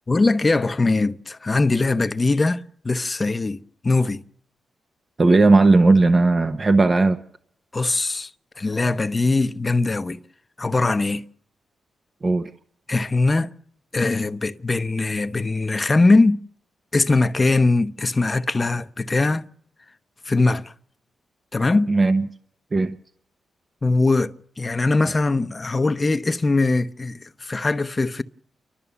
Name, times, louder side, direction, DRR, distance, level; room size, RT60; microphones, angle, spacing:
voice 1, 0.1-4.2 7.7-8.3 8.6-10.2 10.6-11.2 12.9-13.5 13.9-16.4 16.9-19.5 20.3-20.6 21.5-21.9 23.8-28.2, left 3 dB, 25° left, 0.8 m, -21 dB
voice 2, 5.2-7.2 12.2-12.5 21.9-22.3 22.7-23.0, right 3 dB, 30° right, 0.9 m, -16 dB
29.5 x 12.5 x 7.0 m
cardioid pair, 105°, 0 cm